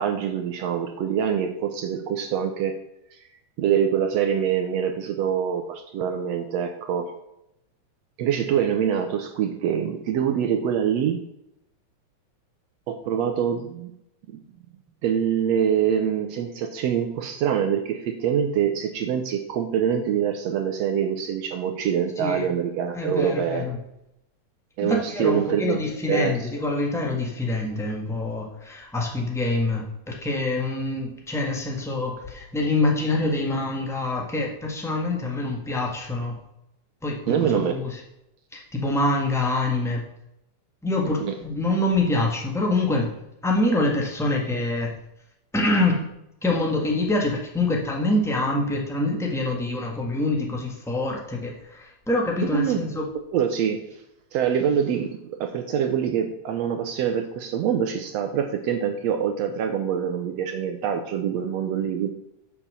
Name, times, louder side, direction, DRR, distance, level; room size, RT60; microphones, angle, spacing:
voice 1, 0.0-2.8 3.1-3.2 3.6-7.1 8.2-11.2 12.9-13.9 14.3-14.4 15.0-23.7 24.8-25.8 26.1-26.3 37.3-37.7 41.2-41.3 52.5-52.8 53.3-53.9 54.3-62.1, right 8 dB, 70° right, 6 dB, 1.7 m, -25 dB
voice 2, 22.2-22.5 22.9-23.8 24.9-36.4 37.0-38.0 38.5-40.0 40.8-43.1 43.4-45.0 45.5-46.0 46.4-53.0, left 2 dB, 5° left, -1 dB, 0.4 m, -25 dB
7.3 x 6.7 x 6.7 m, 0.83 s
omnidirectional pair, 3.5 m